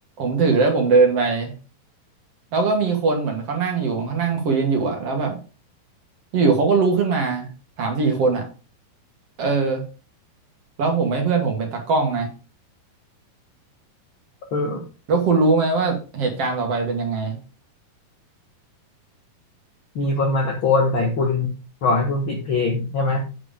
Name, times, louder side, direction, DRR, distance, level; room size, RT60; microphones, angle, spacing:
voice 1, 0.2-1.5 2.5-5.4 6.3-7.5 7.8-8.5 9.4-9.8 10.8-12.3 15.1-17.4, right 4 dB, 50° right, 2 dB, 2.2 m, -21 dB
voice 2, 14.5-14.8 19.9-21.5 21.8-23.2, left 3 dB, 85° left, 2 dB, 1.1 m, -22 dB
8.9 x 4.9 x 5.0 m, 0.33 s
omnidirectional pair, 4.4 m